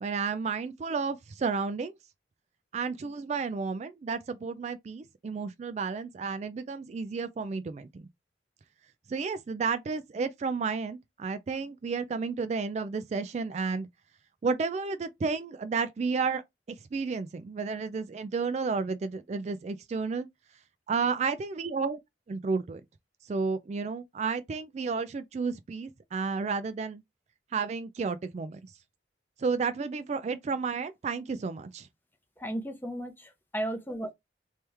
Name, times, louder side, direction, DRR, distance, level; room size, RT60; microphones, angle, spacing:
voice 1, 0.0-2.0 2.7-8.0 9.1-13.9 14.4-16.4 16.7-20.3 20.9-22.0 22.3-22.8 23.3-27.0 27.5-28.7 29.4-31.9, right 4 dB, 40° right, 0.3 m, -32 dB
voice 2, 32.4-34.1, right 1 dB, 10° left, 0.7 m, -35 dB
3.2 x 3.0 x 3.4 m
head